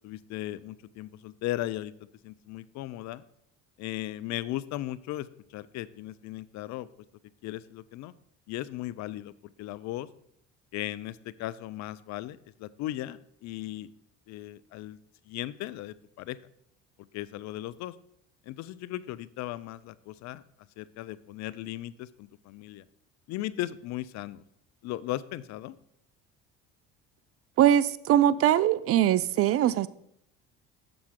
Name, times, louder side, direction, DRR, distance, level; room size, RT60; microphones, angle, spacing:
voice 1, 0.0-1.9 2.2-3.2 3.8-6.9 7.4-8.1 8.5-9.3 9.6-10.1 10.7-13.9 14.3-15.0 15.3-16.4 17.1-18.0 18.5-20.4 20.8-22.8 23.3-24.4 24.8-25.8, left 15 dB, 55° left, 0.5 m, -37 dB
voice 2, 27.6-29.9, right 11 dB, 45° right, 0.4 m, -22 dB
7.1 x 6.7 x 3.7 m
hypercardioid pair, 70°, 33 cm